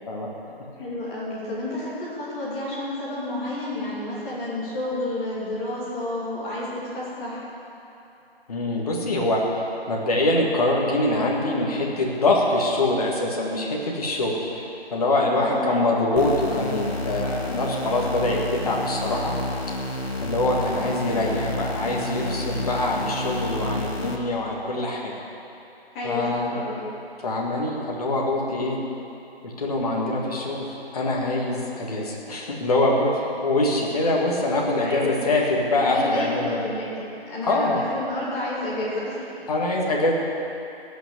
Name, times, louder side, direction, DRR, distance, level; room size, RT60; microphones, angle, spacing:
voice 1, 0.8-7.4 15.3-15.9 25.9-26.8 28.5-28.8 34.7-35.3 35.7-39.3, left 1 dB, 15° left, -8 dB, 2.7 m, -30 dB
voice 2, 8.5-14.7 14.9-19.3 20.2-25.1 26.0-26.6 27.2-28.8 29.4-36.6 37.4-37.8 39.5-40.1, left 2 dB, 35° left, -2 dB, 2.0 m, -24 dB
sound 1, 16.2-24.2, left 1 dB, 85° left, 1.8 m, -30 dB
16.5 x 6.2 x 8.2 m, 2.9 s
figure-of-eight pair, 160°, 31 cm